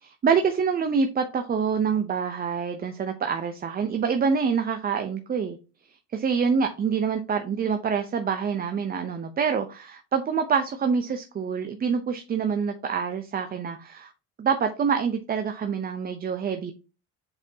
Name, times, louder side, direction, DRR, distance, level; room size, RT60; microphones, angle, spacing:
voice 1, 0.0-5.6 6.1-14.1 14.4-16.7, right 6 dB, 25° right, 0.7 m, -26 dB
7.8 x 4.3 x 2.8 m
cardioid pair, 125°, 33 cm